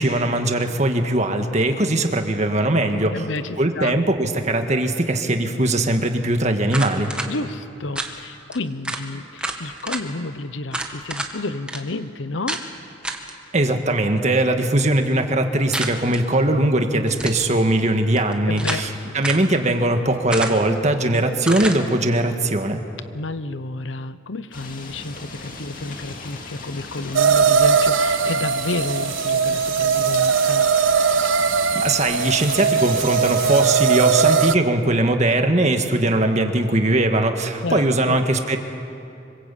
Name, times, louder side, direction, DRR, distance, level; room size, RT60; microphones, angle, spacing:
voice 1, 0.0-3.1 3.6-7.1 13.5-18.9 19.1-22.8 31.7-38.6, right 1 dB, 35° right, 5 dB, 1.7 m, -20 dB
voice 2, 3.1-4.0 7.2-12.6 18.5-18.9 23.1-30.7 37.6-38.2, left 2 dB, 75° left, 13 dB, 0.9 m, -30 dB
sound 1, 6.7-7.3 7.9-8.1 8.5-8.6 8.8-9.0 9.4-10.0 10.7-11.3 11.7-11.8 12.5-12.6 13.0-13.3 15.7-16.2 17.1-17.5 18.2-18.9 19.2-19.5 20.3-20.7 21.4-21.8, right 1 dB, 5° right, 1.6 m, -28 dB
sound 2, 24.5-33.7, left 3 dB, 45° left, 2.3 m, -37 dB
sound 3, 27.1-34.6, right 6 dB, 85° right, 0.7 m, -19 dB
25.5 x 22.5 x 8.5 m, 2.7 s
head